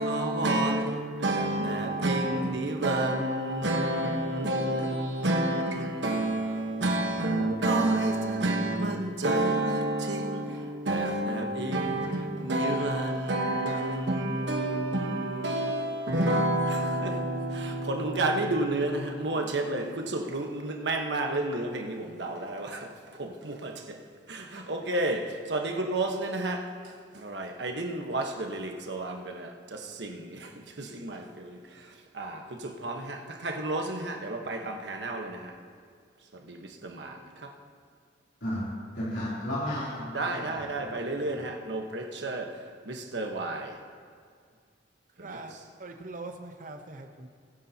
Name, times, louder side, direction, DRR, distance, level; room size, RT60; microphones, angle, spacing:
voice 1, 0.0-24.0 24.3-35.5 36.3-37.5 40.1-43.8 45.2-45.4, right 1 dB, 80° right, 1.3 m, -30 dB
voice 2, 38.4-40.9, equal, 80° left, 3.3 m, -34 dB
voice 3, 45.2-45.5 45.8-47.3, right 2 dB, 45° right, 0.9 m, -42 dB
22.0 x 10.0 x 2.9 m
head